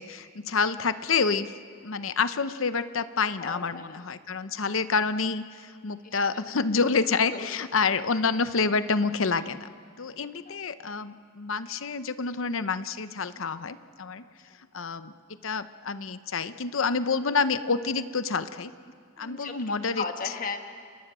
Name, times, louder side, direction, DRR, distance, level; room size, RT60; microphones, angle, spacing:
voice 1, 0.0-1.5 1.8-9.7 10.0-14.2 14.7-15.1 15.4-18.7 19.2-20.0, left 4 dB, 70° left, 12 dB, 0.8 m, -28 dB
voice 2, 3.4-4.0 6.0-6.4 7.3-7.5 10.5-10.6 14.4-14.6 19.2-19.5 20.0-20.6, left 5 dB, 40° left, 5 dB, 1.8 m, -36 dB
29.0 x 23.0 x 6.2 m, 2.1 s
head